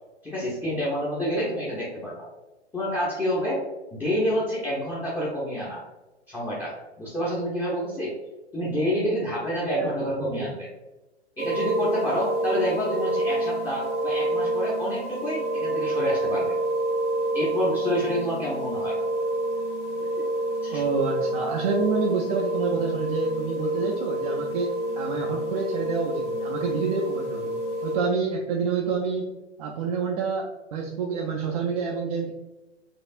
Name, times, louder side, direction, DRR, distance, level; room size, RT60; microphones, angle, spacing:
voice 1, 0.2-2.2 2.7-3.6 3.9-5.8 6.3-8.1 8.5-10.6 11.4-16.6 17.3-19.0 20.0-20.3 20.6-20.8, equal, 10° left, -7 dB, 0.6 m, -28 dB
voice 2, 9.7-10.4 20.7-27.5 27.8-29.3 29.6-32.3, right 5 dB, 35° right, -1 dB, 0.4 m, -28 dB
sound 1, 11.4-28.0, right 1 dB, 85° right, 0.8 m, -28 dB
4.3 x 2.3 x 2.4 m, 1.1 s
figure-of-eight pair, 110°, 35 cm